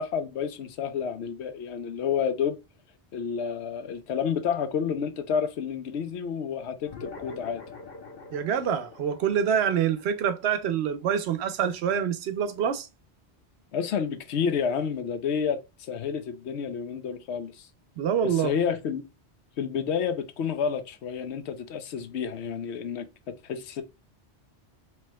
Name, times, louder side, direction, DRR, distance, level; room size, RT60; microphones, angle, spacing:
voice 1, 0.0-2.6 3.1-7.6 13.7-17.7 18.2-19.0 19.6-23.8, left 7 dB, 75° left, 0.9 m, -30 dB
sound 1, 6.9-11.7, left 4 dB, 55° left, 1.1 m, -45 dB
voice 2, 8.3-12.9 18.0-18.5, right 8 dB, 75° right, 0.8 m, -26 dB
4.5 x 2.9 x 2.2 m
omnidirectional pair, 1.1 m